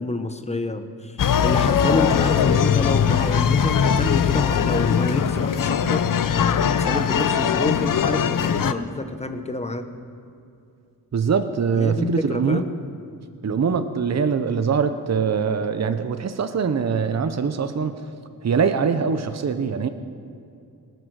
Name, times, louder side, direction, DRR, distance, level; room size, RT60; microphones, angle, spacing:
voice 1, 0.0-6.0 6.6-9.9 11.8-12.7, left 2 dB, 20° left, 8 dB, 1.2 m, -27 dB
sound 1, 1.2-8.7, left 7 dB, 60° left, 0.7 m, -20 dB
voice 2, 11.1-12.6 13.4-17.9 18.4-19.9, right 6 dB, 45° right, 9 dB, 0.9 m, -23 dB
19.5 x 9.4 x 6.5 m, 2.5 s
cardioid pair, 75°, 37 cm